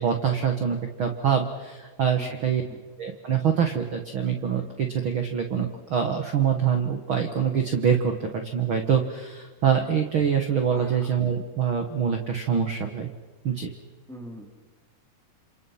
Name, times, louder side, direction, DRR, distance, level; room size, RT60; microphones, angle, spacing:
voice 1, 0.0-2.6 3.0-13.1 13.4-13.7, right 7 dB, 60° right, 5 dB, 1.4 m, -25 dB
voice 2, 10.7-11.1 14.1-14.5, right 1 dB, ahead, 3 dB, 2.2 m, -42 dB
29.0 x 28.0 x 5.8 m, 1.4 s
omnidirectional pair, 4.6 m